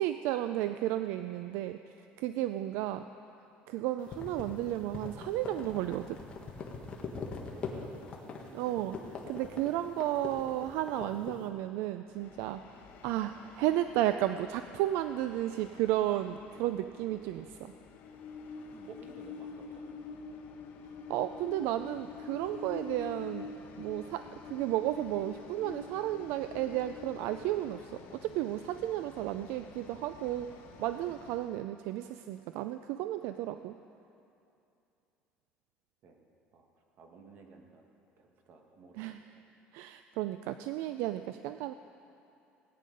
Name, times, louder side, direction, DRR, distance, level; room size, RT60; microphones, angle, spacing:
voice 1, 0.0-3.1 3.7-6.2 8.5-17.7 21.1-33.7 39.0-39.2 39.7-41.7, right 13 dB, 75° right, 10 dB, 0.4 m, -33 dB
sound 1, 4.0-11.4, left 5 dB, 30° left, 1.6 m, -42 dB
voice 2, 7.5-8.0 18.7-20.3 36.0-36.3 36.5-37.8 38.2-39.2, right 4 dB, 50° right, 3 dB, 1.6 m, -54 dB
Train, 12.1-31.6, left 4 dB, 55° left, 1.1 m, -48 dB
17.5 x 9.3 x 5.3 m, 2.7 s
cardioid pair, 155°, 4 cm